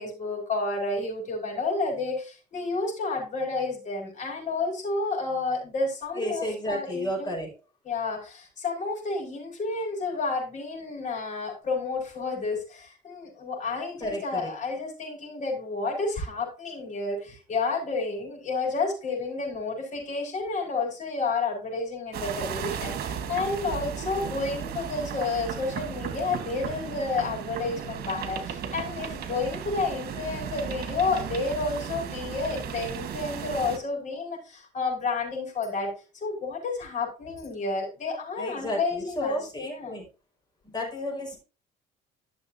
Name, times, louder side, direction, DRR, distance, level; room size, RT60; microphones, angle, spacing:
voice 1, 0.0-7.3 7.8-40.0, left 3 dB, 45° left, 0 dB, 5.6 m, -30 dB
voice 2, 6.1-7.5 14.0-14.5 38.4-40.0 40.6-41.4, equal, 25° left, 1 dB, 5.4 m, -32 dB
sound 1, 22.1-33.8, right 8 dB, 65° right, 1.6 m, -35 dB
13.0 x 6.8 x 2.8 m, 0.32 s
cardioid pair, 110°, 17 cm